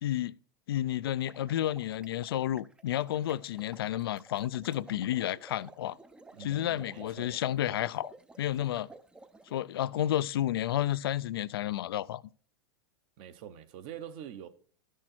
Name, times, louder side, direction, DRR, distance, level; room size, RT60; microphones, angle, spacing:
voice 1, 0.0-0.3 0.7-6.0 6.4-8.9 9.5-12.2, left 12 dB, 85° left, 0.4 m, -31 dB
sound 1, 1.1-9.6, right 2 dB, 5° right, 0.5 m, -53 dB
voice 2, 6.3-7.4 13.2-14.5, right 9 dB, 50° right, 0.9 m, -45 dB
12.0 x 6.4 x 4.3 m
supercardioid pair, 130°, 12 cm